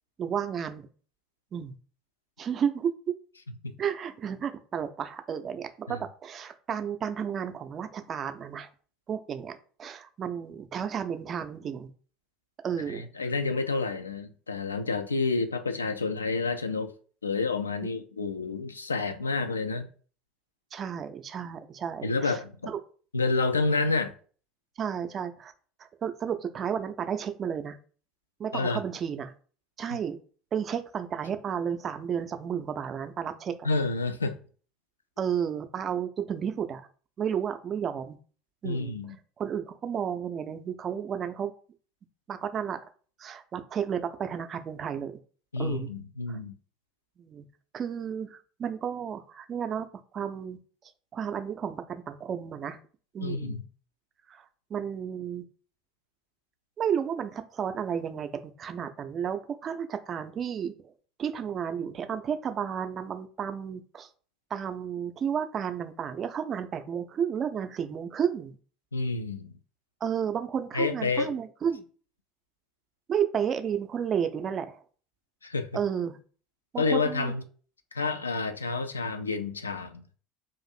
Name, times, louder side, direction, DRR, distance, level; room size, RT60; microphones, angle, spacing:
voice 1, 0.2-0.9 1.5-1.8 2.4-3.1 3.8-8.7 9.1-11.9 12.6-13.0 20.7-22.4 22.7-22.8 24.8-25.5 26.0-27.8 28.4-29.3 29.8-30.2 30.5-33.7 35.2-36.9 37.2-38.2 38.6-39.0 39.4-41.5 42.3-42.8 43.2-45.1 45.6-45.9 46.3-46.4 47.2-47.4 47.7-49.9 50.1-50.6 51.1-52.8 53.1-53.6 54.3-54.5 54.7-55.4 56.8-60.9 61.2-64.1 64.5-68.6 70.0-71.8 73.1-74.8 75.7-76.2 76.7-77.3, right 8 dB, 35° right, 0.4 m, -32 dB
voice 2, 12.9-16.9 17.2-19.9 22.0-22.7 23.1-24.1 28.5-28.8 33.6-34.4 38.6-39.2 45.5-46.5 53.2-53.6 68.9-69.5 70.7-71.3 75.4-75.7 76.8-77.4 77.9-80.0, left 3 dB, 80° left, 0.3 m, -29 dB
2.5 x 2.5 x 4.1 m
figure-of-eight pair, 65°, 0 cm